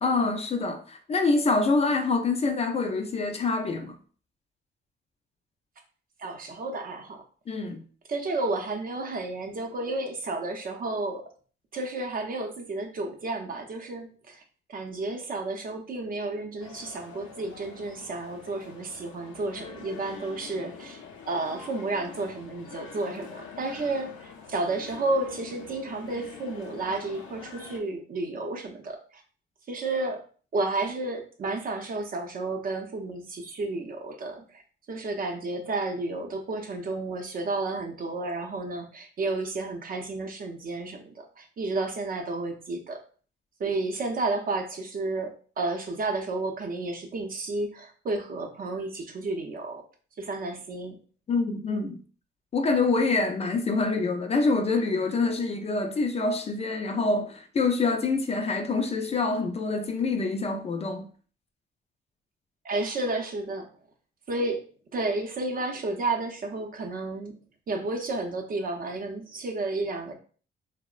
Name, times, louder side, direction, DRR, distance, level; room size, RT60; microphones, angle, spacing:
voice 1, 0.0-4.0 7.5-7.8 51.3-52.0 52.5-61.1, left 3 dB, 30° left, 0.3 m, -26 dB
voice 2, 6.2-7.2 8.1-11.3 11.7-14.4 14.7-29.2 29.7-30.2 30.5-34.6 34.9-43.0 43.6-49.8 50.2-51.0 62.6-63.7 64.3-64.6 64.9-67.3 67.7-70.1, right 2 dB, 45° right, 0.6 m, -31 dB
sound 1, 16.6-27.8, left 6 dB, 90° left, 0.5 m, -45 dB
2.8 x 2.0 x 2.3 m
cardioid pair, 90°, 20 cm